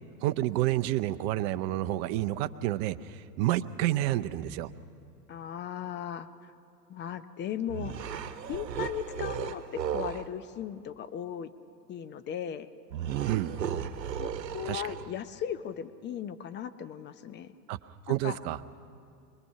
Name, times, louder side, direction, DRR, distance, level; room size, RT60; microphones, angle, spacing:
voice 1, 0.2-4.7 13.2-13.6 14.6-15.0 17.7-17.8 18.1-18.6, right 15 dB, 40° right, 12 dB, 0.7 m, -29 dB
voice 2, 5.3-6.3 6.9-7.9 8.5-11.5 11.9-12.7 14.2-17.5 18.1-18.4, left 9 dB, 20° left, 11 dB, 0.7 m, -37 dB
sound 1, 7.7-10.3 12.9-15.2, right 9 dB, 75° right, 1.1 m, -35 dB
25.0 x 21.0 x 5.7 m, 2.6 s
hypercardioid pair, 100°, 49 cm